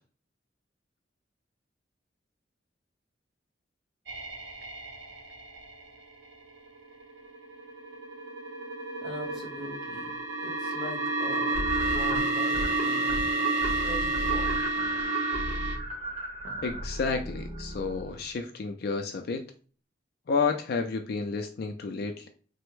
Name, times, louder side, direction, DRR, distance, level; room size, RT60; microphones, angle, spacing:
sound 1, 4.1-5.9 6.7-15.8, right 2 dB, 80° right, 0.7 m, -30 dB
voice 1, 9.0-13.3 13.8-14.6, equal, ahead, -6 dB, 1.2 m, -42 dB
sound 2, 11.5-12.7 13.0-13.3 13.6-18.4, equal, 40° right, 1.2 m, -36 dB
voice 2, 16.6-19.4 20.3-22.3, left 4 dB, 55° left, 6 dB, 0.3 m, -31 dB
3.3 x 2.0 x 3.1 m, 0.40 s
head